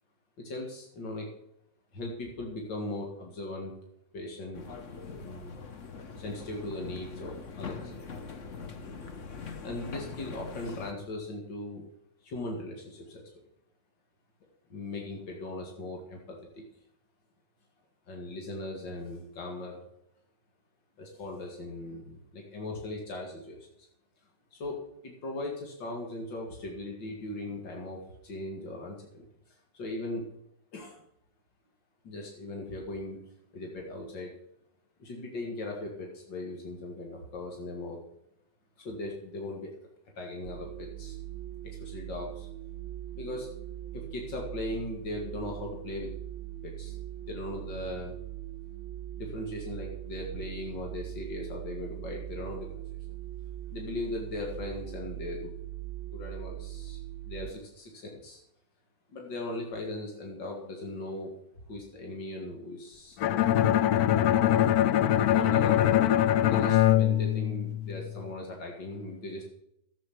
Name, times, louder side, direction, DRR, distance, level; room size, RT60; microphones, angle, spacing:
voice 1, 0.4-1.3 1.9-3.7 4.1-4.6 5.1-5.5 6.2-7.9 9.6-11.9 12.2-13.3 14.7-16.6 18.1-19.8 21.0-23.7 24.5-24.8 25.0-29.2 29.7-30.2 30.7-31.0 32.0-33.2 33.5-34.3 35.0-38.0 38.8-39.7 40.2-41.2 41.6-42.5 43.2-43.5 43.9-46.1 46.6-46.9 47.3-48.2 49.1-52.7 53.7-55.5 56.1-57.0 57.3-58.4 59.1-61.3 61.7-63.4 65.3-66.1 66.4-69.5, left 2 dB, 85° left, 0 dB, 2.8 m, -38 dB
sound 1, 4.5-10.9, left 5 dB, 45° left, 1.4 m, -42 dB
sound 2, 40.4-57.5, right 14 dB, 65° right, 0.7 m, -41 dB
Bowed string instrument, 63.2-68.1, left 12 dB, 70° left, 1.0 m, -23 dB
12.5 x 8.7 x 6.0 m, 0.81 s
omnidirectional pair, 1.9 m